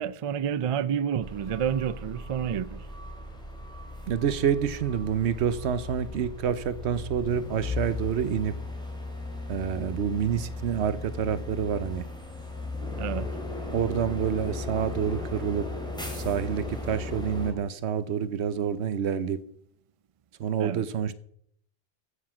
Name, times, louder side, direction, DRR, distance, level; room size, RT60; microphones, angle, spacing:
voice 1, 0.0-2.9 13.0-13.3 20.6-20.9, right 8 dB, 50° right, 0.4 m, -29 dB
sound 1, 1.2-17.5, left 2 dB, 5° left, 2.7 m, -36 dB
voice 2, 4.1-8.5 9.5-12.0 13.7-15.7 16.1-19.4 20.4-21.1, right 8 dB, 90° right, 1.0 m, -28 dB
15.0 x 6.5 x 6.0 m
omnidirectional pair, 1.1 m